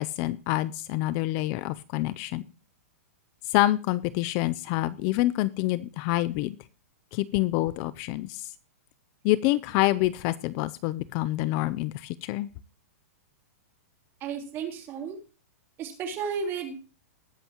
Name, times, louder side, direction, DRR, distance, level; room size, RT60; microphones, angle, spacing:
voice 1, 0.0-2.4 3.4-6.6 7.1-8.5 9.2-12.5, left 17 dB, 35° left, 17 dB, 0.5 m, -27 dB
voice 2, 14.2-15.2 15.8-16.7, right 6 dB, 30° right, 2 dB, 3.7 m, -33 dB
20.5 x 8.0 x 2.9 m, 0.34 s
hypercardioid pair, 150°, 8 cm